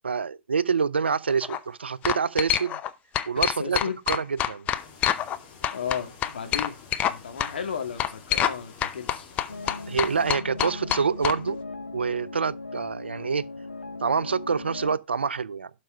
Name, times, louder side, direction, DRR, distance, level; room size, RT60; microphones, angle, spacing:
voice 1, 0.0-2.8 3.3-3.8 4.1-4.7 9.9-11.6 11.9-13.5 14.0-15.7, right 5 dB, 75° right, 0.5 m, -26 dB
sound 1, 1.3-1.6 2.0-2.9 3.1-5.4 5.6-7.1 7.4-7.5 8.0-8.6 8.8-11.4, left 11 dB, 25° left, 0.7 m, -26 dB
voice 2, 3.3-4.0 5.7-6.7 7.1-9.3, left 7 dB, 60° left, 2.3 m, -34 dB
sound 2, 4.7-10.3, left 5 dB, 40° left, 3.0 m, -49 dB
sound 3, 9.5-15.0, left 3 dB, 85° left, 0.5 m, -38 dB
12.0 x 5.2 x 4.6 m
figure-of-eight pair, 115°, 6 cm